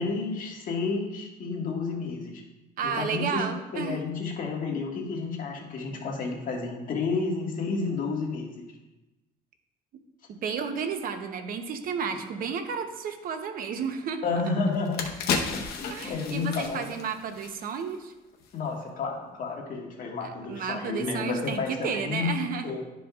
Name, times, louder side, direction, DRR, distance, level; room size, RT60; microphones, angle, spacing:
voice 1, 0.0-2.4 2.8-3.5 3.7-8.7 14.2-16.9 18.5-22.3 22.6-22.8, left 4 dB, 55° left, -1 dB, 1.6 m, -31 dB
voice 2, 2.8-4.0 10.3-14.3 15.9-18.1 20.2-22.8, right 6 dB, 60° right, 7 dB, 0.8 m, -32 dB
sound 1, 14.3-14.4 14.7-18.0 18.3-18.5, left 5 dB, 70° left, 1.0 m, -33 dB
11.5 x 5.0 x 2.4 m, 1.0 s
cardioid pair, 110°, 17 cm